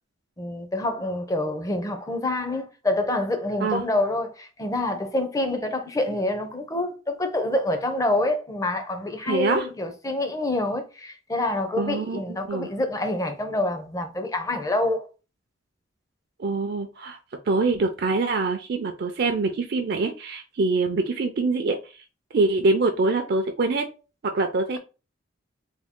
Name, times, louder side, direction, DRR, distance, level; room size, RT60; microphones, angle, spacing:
voice 1, 0.4-15.1, left 2 dB, 20° left, 0.5 m, -27 dB
voice 2, 9.3-9.7 11.8-12.7 16.4-17.2 17.5-21.8 22.3-23.8 24.2-24.8, right 3 dB, 55° right, 0.4 m, -24 dB
3.5 x 2.3 x 3.6 m
head